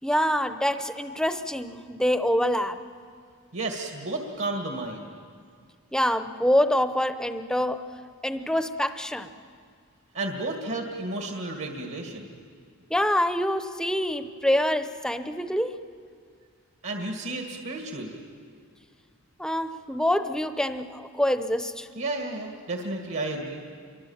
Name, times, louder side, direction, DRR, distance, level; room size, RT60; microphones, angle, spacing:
voice 1, 0.0-2.8 5.9-7.9 8.2-9.3 12.9-15.8 19.4-21.9, equal, 5° left, 9 dB, 0.7 m, -26 dB
voice 2, 3.5-5.1 10.1-12.4 16.8-18.2 21.9-23.6, right 2 dB, 60° right, 2 dB, 2.1 m, -32 dB
27.5 x 23.5 x 7.2 m, 2.1 s
head